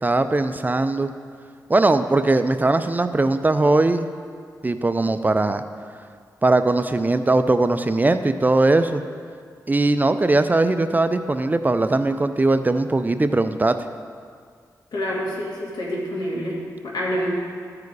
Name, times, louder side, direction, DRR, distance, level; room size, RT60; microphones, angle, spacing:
voice 1, 0.0-1.1 1.7-4.1 4.6-5.6 6.4-9.0 9.7-13.8, right 2 dB, 25° right, 10 dB, 0.4 m, -20 dB
voice 2, 14.9-16.6 16.8-17.3, equal, 80° left, -4 dB, 2.2 m, -27 dB
14.0 x 4.8 x 4.7 m, 2.1 s
cardioid pair, 70°, 7 cm